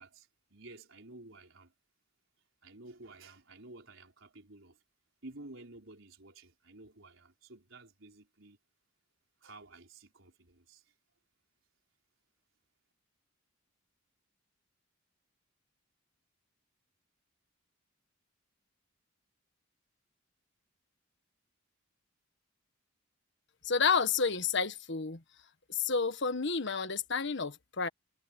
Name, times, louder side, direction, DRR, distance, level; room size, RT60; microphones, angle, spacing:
voice 1, 0.0-1.7 2.6-4.8 5.2-8.6 9.4-10.9, right 2 dB, 65° right, 5.3 m, -52 dB
voice 2, 23.6-25.2 25.7-27.9, left 5 dB, 60° left, 1.5 m, -30 dB
head